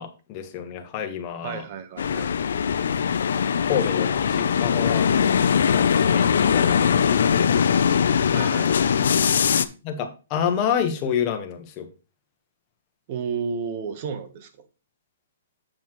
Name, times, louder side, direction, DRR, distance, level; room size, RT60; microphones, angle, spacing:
voice 1, 0.0-1.6 3.6-5.1 5.6-7.5 9.8-11.9, left 8 dB, 30° left, 5 dB, 1.3 m, -28 dB
voice 2, 1.4-2.3 8.3-9.0 13.1-14.5, right 6 dB, 40° right, 9 dB, 1.2 m, -32 dB
sound 1, 2.0-9.6, left 7 dB, 70° left, 0.5 m, -21 dB
7.5 x 7.0 x 3.1 m, 0.32 s
hypercardioid pair, 150°, 0 cm